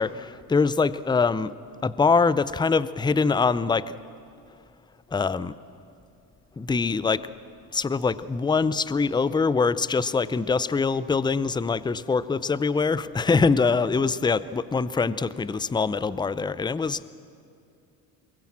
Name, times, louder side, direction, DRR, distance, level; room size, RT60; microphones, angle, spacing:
voice 1, 0.0-1.5 1.8-3.9 5.1-5.5 6.6-7.3 7.7-17.0, left 4 dB, 10° left, 17 dB, 0.5 m, -24 dB
23.0 x 20.0 x 7.4 m, 2.5 s
hypercardioid pair, 70°, 49 cm